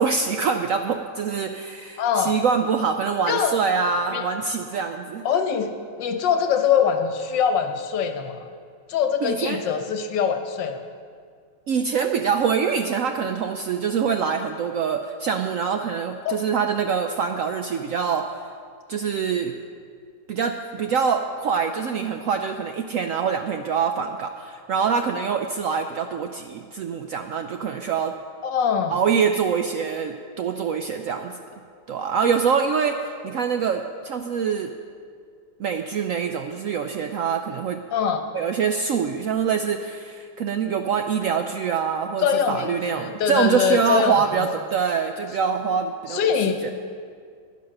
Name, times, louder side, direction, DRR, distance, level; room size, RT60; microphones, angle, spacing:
voice 1, 0.0-5.2 9.2-9.6 11.7-18.4 18.9-19.6 20.3-28.1 28.9-31.4 31.9-34.7 35.6-37.8 38.3-46.3 46.6-46.7, right 6 dB, 75° right, 6 dB, 0.7 m, -25 dB
voice 2, 2.0-2.3 3.3-3.5 4.1-4.2 5.2-8.5 8.9-10.8 16.2-16.4 28.4-28.9 37.9-38.2 42.2-44.4 46.1-46.7, left 7 dB, 85° left, 6 dB, 1.6 m, -23 dB
10.5 x 10.0 x 6.5 m, 2.1 s
omnidirectional pair, 1.9 m